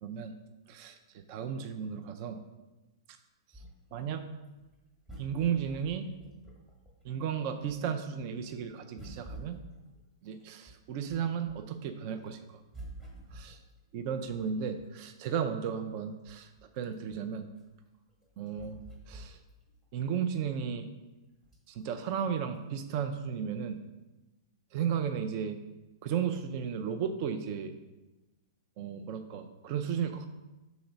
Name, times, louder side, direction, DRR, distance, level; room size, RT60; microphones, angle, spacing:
voice 1, 0.0-0.4 0.7-2.4 3.9-4.2 5.2-6.1 7.0-9.6 10.2-12.6 13.3-13.6 13.9-17.5 18.4-18.8 19.1-19.4 19.9-20.9 21.7-23.8 24.7-25.6 26.0-27.7 28.8-30.3, right 7 dB, 30° right, 8 dB, 0.5 m, -34 dB
sound 1, 3.5-7.3 7.7-11.8 12.2-15.1 15.7-15.8 16.0-19.8 20.2-20.3 21.4-21.8 22.5-22.6, right 1 dB, 10° right, 1.2 m, -50 dB
5.8 x 4.0 x 5.2 m, 1.1 s
hypercardioid pair, 170°, 3 cm